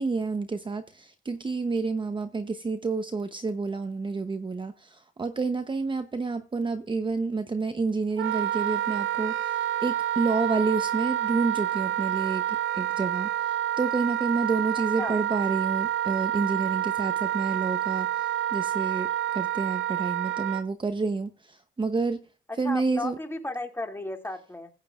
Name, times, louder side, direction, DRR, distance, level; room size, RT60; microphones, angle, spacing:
voice 1, 0.0-22.3 22.6-23.2, right 4 dB, 25° right, 0.9 m, -29 dB
Wind instrument woodwind instrument, 8.2-20.6, right 11 dB, 80° right, 0.8 m, -28 dB
voice 2, 22.6-24.7, left 2 dB, 10° left, 2.6 m, -34 dB
16.5 x 9.2 x 2.5 m
cardioid pair, 90°, 20 cm